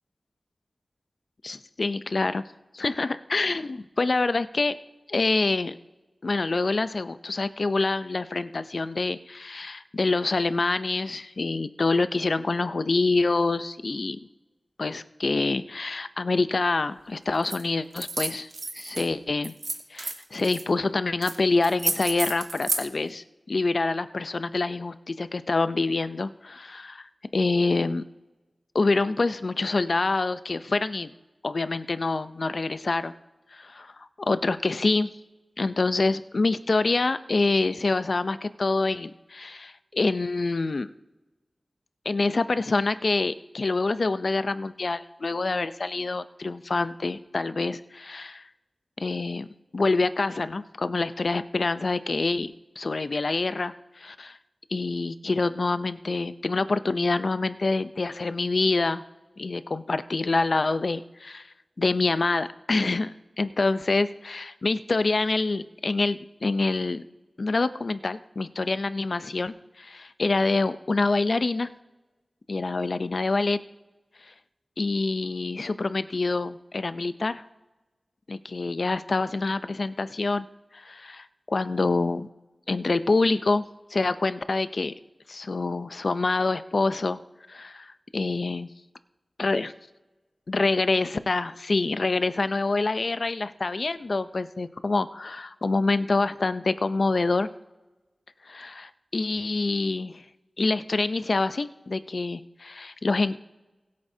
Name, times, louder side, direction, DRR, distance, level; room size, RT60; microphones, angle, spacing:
voice 1, 1.4-2.4 2.7-4.8 5.1-5.8 6.2-14.2 14.8-18.5 18.7-19.5 19.9-27.1 27.3-28.0 28.7-31.1 31.4-33.1 33.5-35.1 35.6-40.9 42.0-48.4 49.0-49.5 49.7-54.4 54.7-59.0 59.4-61.5 61.8-67.0 67.4-71.7 72.5-73.6 74.8-77.4 78.3-80.5 80.7-82.3 82.7-83.6 83.9-84.9 85.3-87.2 87.5-88.7 89.4-89.7 90.5-97.5 98.5-100.2 100.6-103.4, left 3 dB, 65° left, 12 dB, 0.5 m, -26 dB
sound 1, 17.4-17.6 17.9-19.1 19.4-20.6 21.2-21.4 21.6-22.8, right 3 dB, 85° right, 1.5 m, -30 dB
21.0 x 8.4 x 2.7 m, 1.1 s
wide cardioid pair, 60°, 0 cm